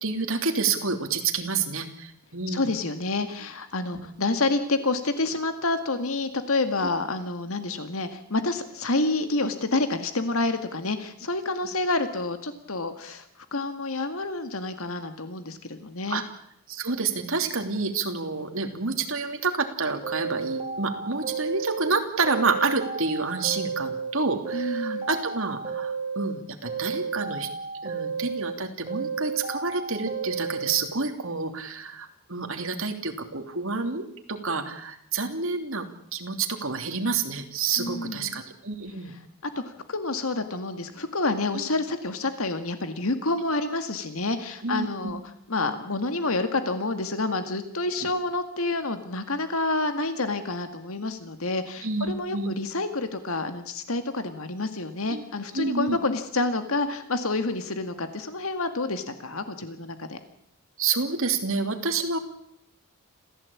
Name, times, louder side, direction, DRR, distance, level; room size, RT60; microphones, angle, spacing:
voice 1, 0.0-2.7 3.9-4.1 16.1-16.2 16.7-27.5 27.8-35.9 36.1-39.1 41.5-41.7 44.6-45.1 51.8-52.6 55.1-55.2 55.5-56.0 60.8-62.2, right 4 dB, 60° right, 5 dB, 3.0 m, -29 dB
voice 2, 2.5-13.2 13.5-16.2 24.5-25.1 37.8-38.3 39.6-45.2 45.5-60.2, left 2 dB, 70° left, 8 dB, 2.0 m, -28 dB
sound 1, 20.0-21.9 22.2-24.1 24.4-26.3 26.7-28.5 28.9-30.7, right 5 dB, 25° right, 4.9 m, -32 dB
27.0 x 16.0 x 8.6 m, 0.73 s
head